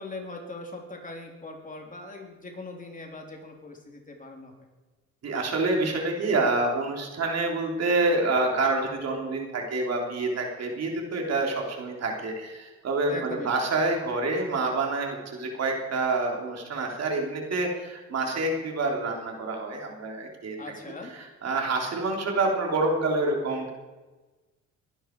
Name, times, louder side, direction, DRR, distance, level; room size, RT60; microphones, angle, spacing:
voice 1, 0.0-4.5 13.1-13.5 20.6-21.2, left 2 dB, 25° left, 1 dB, 3.3 m, -40 dB
voice 2, 5.2-20.6 21.1-23.7, right 2 dB, 55° right, 1 dB, 3.4 m, -27 dB
22.0 x 11.0 x 4.6 m, 1.2 s
cardioid pair, 90°, 30 cm